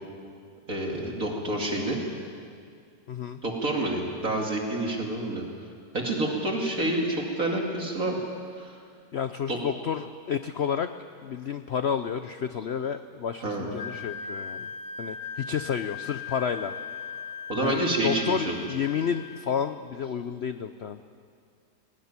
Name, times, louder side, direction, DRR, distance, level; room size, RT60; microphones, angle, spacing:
voice 1, 0.7-2.0 3.4-5.4 5.9-8.2 8.6-8.8 9.5-9.6 13.4-13.7 17.5-18.6, right 1 dB, 50° right, 0 dB, 2.9 m, -28 dB
voice 2, 3.1-3.4 9.1-10.9 11.2-14.7 15.0-16.7 17.6-21.0, left 7 dB, 75° left, 10 dB, 0.6 m, -30 dB
Wind instrument woodwind instrument, 13.8-19.6, left 6 dB, 55° left, 1.3 m, -39 dB
19.5 x 19.0 x 9.7 m, 2.2 s
omnidirectional pair, 1.9 m